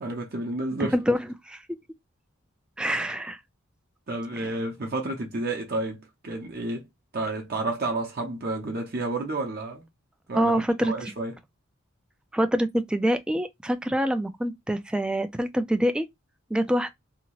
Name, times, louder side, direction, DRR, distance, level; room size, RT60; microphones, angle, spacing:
voice 1, 0.0-0.9 4.1-6.8 7.1-9.8 10.3-11.3, right 2 dB, 45° right, 0.7 m, -30 dB
voice 2, 2.8-3.4 4.4-4.5 10.3-10.9 12.3-16.1 16.5-16.9, equal, 5° right, 0.3 m, -25 dB
2.8 x 2.4 x 2.9 m
head